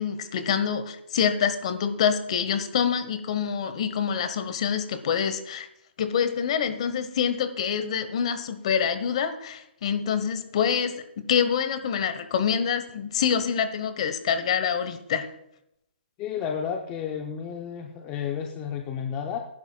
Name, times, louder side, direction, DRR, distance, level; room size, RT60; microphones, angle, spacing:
voice 1, 0.0-5.7 6.0-15.3, left 7 dB, 30° left, 11 dB, 1.0 m, -26 dB
voice 2, 16.2-19.4, left 7 dB, 15° left, 3 dB, 0.5 m, -31 dB
20.5 x 10.5 x 2.3 m, 0.80 s
hypercardioid pair, 170°, 6 cm